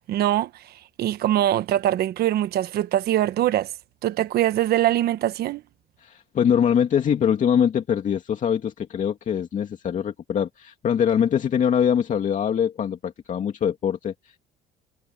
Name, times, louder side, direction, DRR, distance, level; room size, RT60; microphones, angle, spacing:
voice 1, 0.1-0.5 1.0-3.7 4.0-5.6, right 13 dB, 70° right, 1.3 m, -22 dB
voice 2, 6.0-14.4, left 8 dB, 50° left, 2.4 m, -23 dB
cardioid pair, 110°, 17 cm